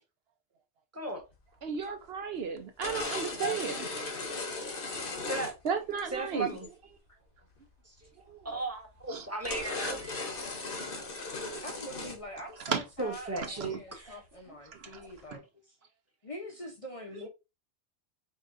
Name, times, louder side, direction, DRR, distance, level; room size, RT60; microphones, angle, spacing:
voice 1, 1.6-3.9 4.6-4.7 5.6-6.5 8.3-8.6 9.1-9.3 10.9-11.1 11.4-11.6 12.7-12.8 13.6-13.7 14.7-15.4 17.1-17.2, right 6 dB, 65° right, 0.8 m, -35 dB
sound 1, 1.7-1.8 2.8-6.0 6.5-6.7 8.5-8.6 9.0-9.1 9.4-12.2 12.5-12.6 13.0-13.6, left 3 dB, 55° left, 1.2 m, -37 dB
voice 2, 5.2-5.5 6.1-6.7 7.9-8.1 8.4-10.2 13.0-14.2, right 2 dB, 15° right, 1.0 m, -36 dB
voice 3, 11.6-15.4 16.2-17.3, equal, 35° left, 0.7 m, -44 dB
4.8 x 3.6 x 2.5 m
omnidirectional pair, 1.1 m